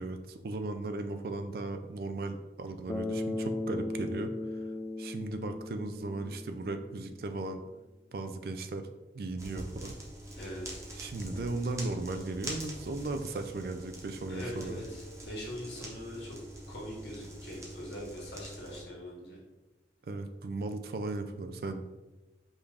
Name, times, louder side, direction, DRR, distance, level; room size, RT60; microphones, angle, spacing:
voice 1, 0.0-4.6 5.0-7.6 8.1-8.9 9.1-10.0 11.0-14.8 20.1-21.8, right 2 dB, 55° right, 8 dB, 0.4 m, -37 dB
Bass guitar, 2.9-7.1, left 2 dB, 20° left, 0.4 m, -37 dB
sound 1, 9.4-18.8, right 1 dB, 15° right, 0.7 m, -44 dB
voice 2, 10.4-10.8 14.3-16.4 16.7-19.4, equal, 80° left, -4 dB, 1.4 m, -42 dB
5.1 x 2.5 x 3.3 m, 1.1 s
head